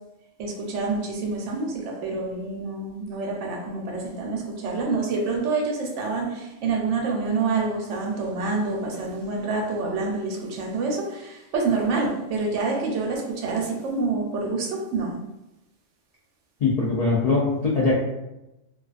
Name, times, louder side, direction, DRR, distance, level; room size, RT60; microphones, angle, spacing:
voice 1, 0.4-15.2, right 3 dB, 75° right, 0 dB, 0.9 m, -27 dB
voice 2, 16.6-17.9, left 3 dB, 70° left, -5 dB, 0.3 m, -21 dB
2.4 x 2.2 x 2.4 m, 0.95 s
omnidirectional pair, 1.3 m